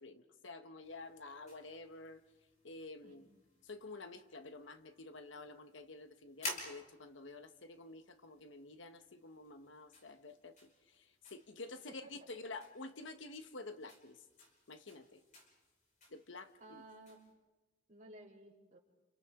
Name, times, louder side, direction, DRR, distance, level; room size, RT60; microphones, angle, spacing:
voice 1, 0.0-2.2 2.6-3.2 3.6-14.2 14.7-15.2 16.1-16.8, left 3 dB, 75° left, 9 dB, 1.2 m, -50 dB
sound 1, 0.8-17.3, left 2 dB, 40° left, 5.3 m, -54 dB
voice 2, 3.0-3.4 12.0-12.1 16.6-17.2 17.9-18.8, right 1 dB, 40° right, -1 dB, 3.6 m, -56 dB
29.5 x 29.5 x 3.7 m, 1.2 s
head